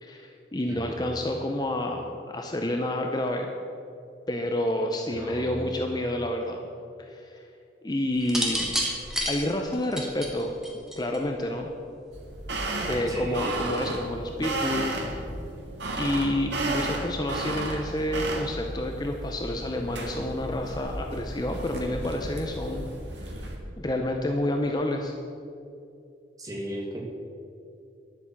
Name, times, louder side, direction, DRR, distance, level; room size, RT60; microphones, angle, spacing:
voice 1, 0.0-3.5 4.3-6.6 7.0-7.4 7.8-8.8 9.3-10.5 11.0-11.7 12.9-15.3 16.0-22.9 23.2-25.1, left 1 dB, 20° left, 3 dB, 0.6 m, -29 dB
voice 2, 0.7-1.4 5.1-5.9 13.1-13.6 26.4-27.0, right 1 dB, 20° right, -1 dB, 1.8 m, -36 dB
sound 1, 8.2-11.4 12.4-12.8, equal, 5° right, 1.4 m, -29 dB
sound 2, 12.1-23.6, right 2 dB, 80° right, 1.8 m, -33 dB
10.5 x 8.4 x 7.3 m, 2.6 s
head